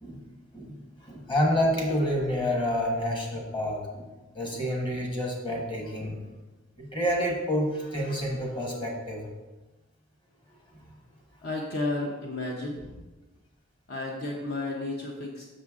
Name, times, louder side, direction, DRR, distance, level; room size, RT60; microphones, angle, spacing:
voice 1, 0.5-4.1 4.3-6.2 6.8-9.3, equal, 25° left, -1 dB, 1.3 m, -28 dB
voice 2, 11.4-12.9 13.9-15.5, left 2 dB, 55° left, -1 dB, 0.8 m, -32 dB
6.7 x 6.3 x 3.6 m, 1.2 s
head